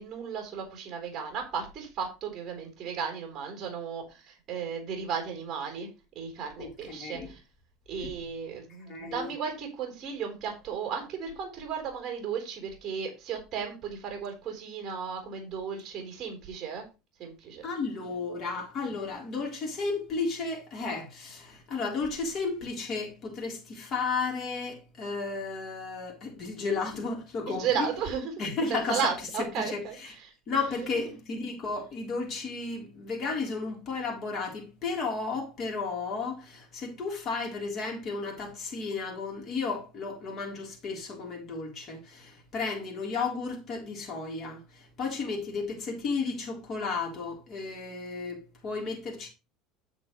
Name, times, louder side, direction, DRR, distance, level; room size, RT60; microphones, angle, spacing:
voice 1, 0.0-5.9 6.1-7.4 7.9-16.8 17.2-17.7 27.5-28.3 28.7-30.1, right 6 dB, 30° right, 4.1 m, -34 dB
voice 2, 6.6-7.3 8.9-9.3 17.6-27.9 28.4-29.1 29.6-30.1 30.5-49.3, left 4 dB, 35° left, 3.7 m, -33 dB
9.9 x 7.5 x 3.2 m
cardioid pair, 145°, 0 cm